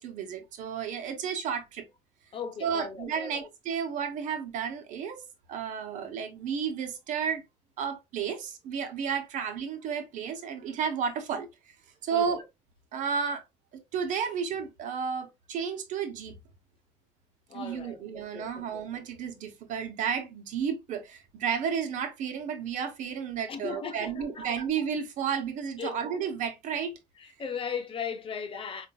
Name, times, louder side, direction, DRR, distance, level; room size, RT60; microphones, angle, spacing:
voice 1, 0.0-1.9 2.6-5.2 5.5-7.4 7.8-11.7 12.0-12.4 12.9-13.4 13.7-16.3 17.5-26.9, right 7 dB, 75° right, 0.9 m, -32 dB
voice 2, 2.3-3.5 12.1-12.4 17.5-18.8 23.5-24.4 25.8-26.1 27.2-28.9, left 6 dB, 45° left, 0.9 m, -37 dB
5.0 x 2.5 x 2.3 m
cardioid pair, 110°, 13 cm